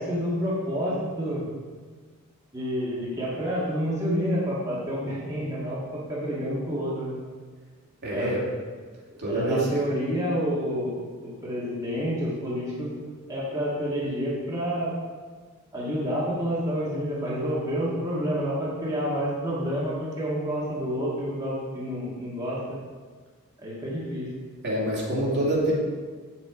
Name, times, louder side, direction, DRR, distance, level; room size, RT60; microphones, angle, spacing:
voice 1, 0.0-1.5 2.5-7.2 8.1-8.4 9.1-12.9 13.3-14.9 15.7-22.6 23.6-24.3, equal, 15° right, -8 dB, 1.7 m, -29 dB
voice 2, 8.0-8.4 9.2-9.9 24.6-25.7, right 1 dB, 50° right, -5 dB, 2.5 m, -26 dB
7.5 x 7.3 x 4.7 m, 1.5 s
head